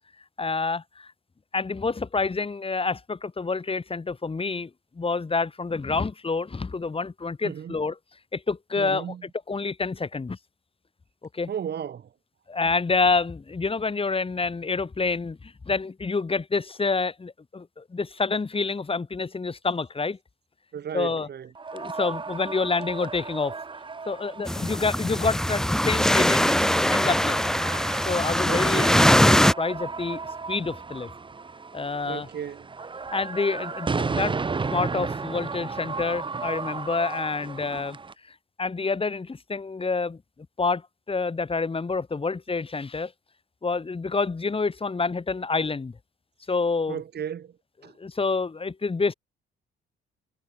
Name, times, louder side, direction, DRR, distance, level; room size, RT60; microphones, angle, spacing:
voice 1, 0.4-1.1 1.5-4.7 5.0-8.0 8.3-10.4 11.3-11.5 12.5-20.2 20.9-21.3 21.7-23.5 24.1-27.4 28.1-31.1 31.7-32.3 33.1-34.4 34.7-38.0 38.3-40.2 40.6-40.8 41.1-43.1 43.6-46.0 46.5-47.0 47.8-49.1, left 4 dB, 30° left, 5.2 m, -28 dB
voice 2, 7.4-7.7 8.8-9.2 11.5-12.1 20.7-21.5 28.5-29.0 32.1-32.7 46.9-47.5 47.8-47.9, right 8 dB, 55° right, 3.0 m, -34 dB
sound 1, 21.5-38.1, right 4 dB, 25° right, 1.1 m, -34 dB
sound 2, 24.5-29.5, equal, ahead, 0.8 m, -21 dB
cardioid pair, 90°, 20 cm